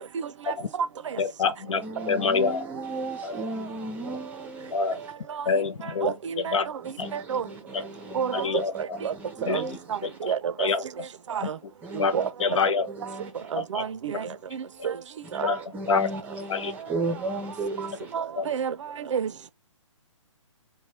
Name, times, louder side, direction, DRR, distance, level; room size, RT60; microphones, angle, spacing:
voice 1, 1.2-2.6 3.2-3.4 4.7-5.0 5.5-6.7 7.0-7.1 7.7-7.9 8.3-9.0 9.4-9.6 10.0-10.3 10.6-10.8 11.4-11.5 12.0-12.1 12.4-12.9 13.5-13.8 14.1-14.2 14.8-14.9 15.4-15.6 15.9-16.1 16.5-16.7 18.4-18.5, left 5 dB, 70° left, 0.6 m, -26 dB
voice 2, 1.7-4.8 7.0-10.2 11.8-12.3 12.9-13.5 15.3-18.1, right 2 dB, 10° right, 0.6 m, -36 dB
voice 3, 6.0-6.5 7.1-7.4 8.1-9.1 9.5-9.6 9.9-10.7 11.3-11.6 11.9-12.3 13.5-14.9 15.3-15.5 18.1-18.7 19.1-19.5, right 7 dB, 65° right, 0.5 m, -30 dB
3.1 x 2.2 x 2.8 m
hypercardioid pair, 150°, 17 cm